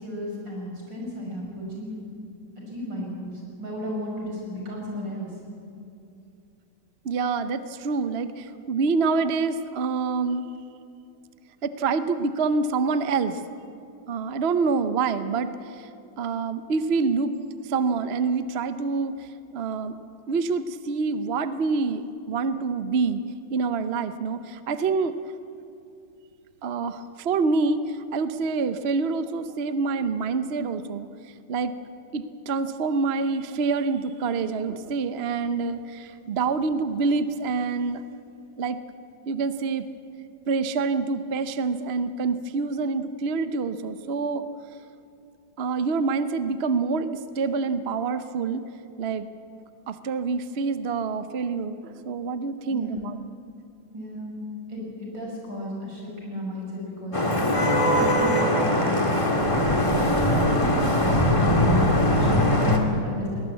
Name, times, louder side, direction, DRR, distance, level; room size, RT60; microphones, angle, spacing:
voice 1, 0.0-1.9 2.7-5.3 52.7-53.2 53.9-54.4 54.7-60.0 60.4-63.4, left 1 dB, 80° right, -2 dB, 6.5 m, -33 dB
voice 2, 7.0-10.5 11.6-13.4 14.1-15.9 16.2-17.3 17.6-20.0 20.3-23.2 23.5-25.2 26.6-31.1 31.5-31.7 32.1-38.0 38.6-38.8 39.3-39.9 40.5-44.4 45.6-48.7 49.0-49.3 49.9-53.1, right 4 dB, 50° right, 11 dB, 0.8 m, -26 dB
Vehicle horn car horn honking / Traffic noise roadway noise, 57.1-62.8, left 1 dB, 15° left, 1.9 m, -21 dB
21.0 x 19.0 x 8.2 m, 2.6 s
omnidirectional pair, 1.9 m